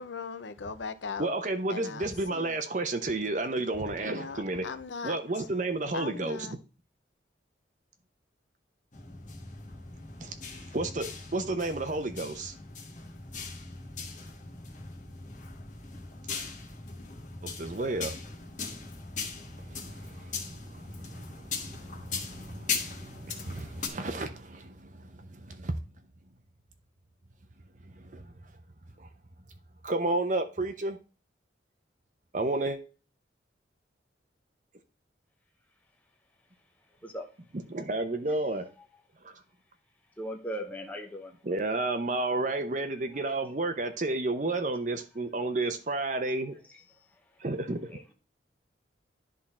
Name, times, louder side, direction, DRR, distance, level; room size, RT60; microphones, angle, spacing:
voice 1, 0.0-1.3 1.7-2.6 4.0-5.2 5.9-6.5, left 5 dB, 85° left, 0.7 m, -39 dB
voice 2, 1.2-4.6 5.0-6.6 10.2-10.3 10.7-11.1 11.3-12.5 17.4-18.2 19.6-25.7 27.9-28.3 29.0-29.1 29.8-31.0 32.3-32.8 37.7-38.7 39.2-39.4 41.4-46.5 47.4-47.8, right 2 dB, 45° right, 0.8 m, -32 dB
sound 1, 8.9-23.9, left 4 dB, 45° left, 1.4 m, -39 dB
voice 3, 40.2-41.3 46.0-46.2 47.9-48.1, equal, 10° left, 0.8 m, -38 dB
11.0 x 3.8 x 4.2 m
head